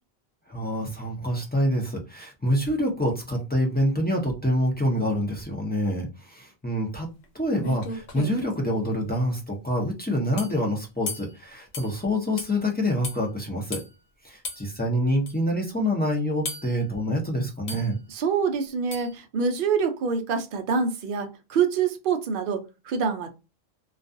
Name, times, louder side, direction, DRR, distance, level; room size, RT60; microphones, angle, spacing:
voice 1, 0.5-7.1 7.3-13.8 14.2-18.0, equal, 15° left, -2 dB, 0.4 m, -26 dB
sound 1, 7.2-7.3 7.6-8.5 10.4-10.6 11.1-11.3 11.7-11.9 12.4-12.5 13.0-13.2 13.7-13.9 14.4-14.6 15.3-15.4 16.5-16.8 17.7-17.9 18.9-19.1, left 2 dB, 75° left, 0.9 m, -35 dB
voice 2, 18.1-23.3, right 6 dB, 60° right, 7 dB, 0.6 m, -26 dB
2.3 x 2.3 x 2.5 m, 0.29 s
omnidirectional pair, 1.1 m